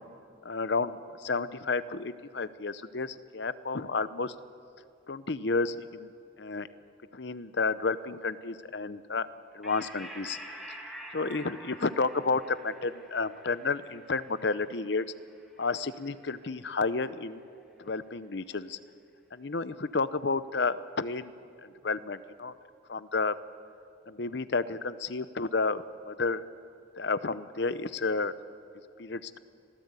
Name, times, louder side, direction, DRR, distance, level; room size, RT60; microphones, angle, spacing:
voice 1, 0.4-4.3 5.1-6.1 6.4-6.7 7.1-9.3 9.5-10.4 11.1-15.0 15.6-17.4 17.8-18.8 19.3-21.3 21.6-22.5 22.9-23.3 24.1-26.4 27.0-28.3 29.0-29.4, left 4 dB, 55° left, 14 dB, 0.8 m, -31 dB
sound 1, 9.6-16.5, equal, ahead, 2.3 m, -47 dB
26.5 x 18.0 x 8.3 m, 2.3 s
head